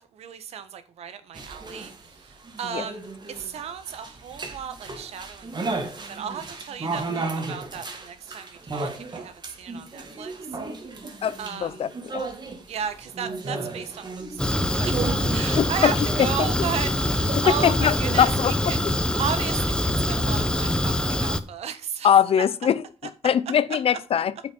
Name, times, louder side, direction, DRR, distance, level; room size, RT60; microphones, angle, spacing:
voice 1, 0.0-3.0 3.3-11.8 12.7-22.1, right 8 dB, 85° right, 1.4 m, -35 dB
sound 1, 1.3-18.5, right 3 dB, 45° right, 2.4 m, -35 dB
voice 2, 11.2-12.3 15.5-15.9 17.6-18.5 22.0-22.8 23.2-24.3, left 9 dB, 70° left, 0.8 m, -22 dB
Fire, 14.4-21.4, left 1 dB, 10° left, 1.2 m, -24 dB
8.8 x 5.9 x 5.5 m
cardioid pair, 70°, 10 cm